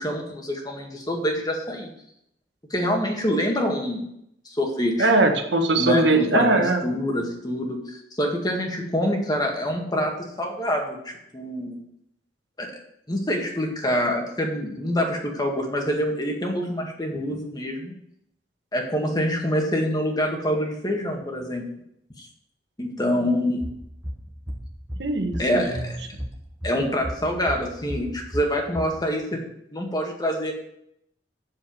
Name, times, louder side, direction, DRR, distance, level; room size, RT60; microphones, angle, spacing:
voice 1, 0.0-1.9 2.7-4.1 4.5-5.1 5.8-10.1 10.4-11.8 12.6-12.7 13.1-17.9 18.7-21.6 22.2-22.3 22.8-23.6 25.4-26.0 26.6-29.4 29.7-30.5, equal, 25° left, 2 dB, 1.9 m, -26 dB
voice 2, 5.0-6.8 25.0-25.6, right 2 dB, 85° right, 4 dB, 1.5 m, -20 dB
sound 1, 23.6-29.0, equal, 10° right, 1.3 m, -36 dB
7.9 x 7.1 x 7.1 m, 0.76 s
head